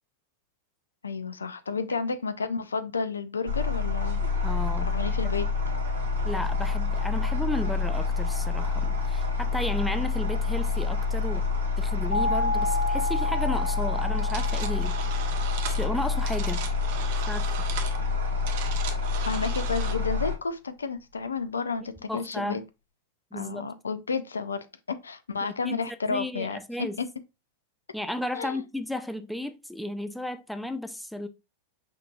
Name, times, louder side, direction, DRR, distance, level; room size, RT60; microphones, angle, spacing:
voice 1, 1.0-4.2 4.9-5.5 19.2-22.6 23.3-27.1 28.4-28.6, left 4 dB, 75° left, 0.5 m, -31 dB
sound 1, 3.5-20.4, left 4 dB, 70° right, 1.2 m, -27 dB
voice 2, 4.4-4.9 6.2-11.4 11.8-15.0 15.7-16.6 17.3-17.5 22.1-22.6 23.3-23.7 25.4-27.0 27.9-31.3, left 1 dB, ahead, 0.4 m, -34 dB
sound 2, 12.1-16.8, left 1 dB, 85° right, 0.9 m, -32 dB
sound 3, 14.2-19.9, right 8 dB, 50° right, 0.8 m, -38 dB
5.7 x 2.9 x 2.4 m
figure-of-eight pair, 90°, 0 cm